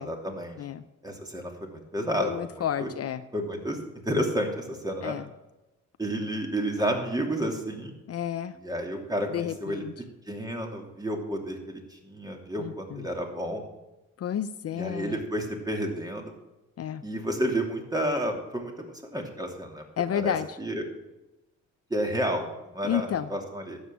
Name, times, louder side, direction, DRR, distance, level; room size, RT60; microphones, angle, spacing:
voice 1, 0.0-0.6 1.0-2.9 3.3-3.8 4.0-5.2 6.0-8.0 8.5-9.8 10.3-13.6 14.7-16.3 17.0-18.9 19.1-19.8 20.1-20.8 21.9-23.8, right 1 dB, 10° right, 2 dB, 2.9 m, -31 dB
voice 2, 2.2-3.2 5.0-5.2 8.1-8.6 9.3-9.9 12.6-13.0 14.2-15.2 16.8-17.0 20.0-20.6 22.8-23.3, left 9 dB, 55° left, 11 dB, 0.7 m, -31 dB
12.0 x 8.2 x 7.5 m, 1.0 s
cardioid pair, 90°, 30 cm